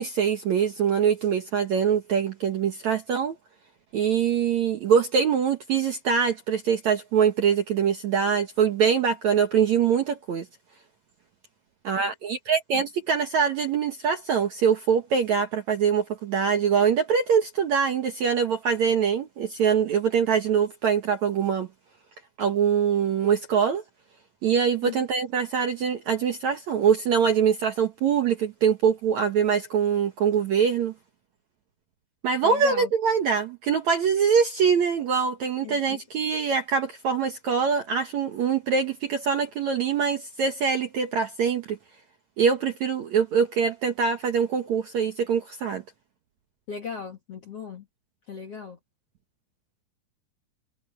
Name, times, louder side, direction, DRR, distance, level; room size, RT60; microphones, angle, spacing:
voice 1, 0.0-3.4 3.9-10.5 11.8-21.7 22.4-23.8 24.4-30.9 32.2-41.8 42.4-45.8, right 7 dB, 65° right, 1.9 m, -23 dB
voice 2, 32.4-32.9 35.6-36.0 46.7-47.8 48.3-48.8, left 6 dB, 55° left, 1.7 m, -37 dB
omnidirectional pair, 5.0 m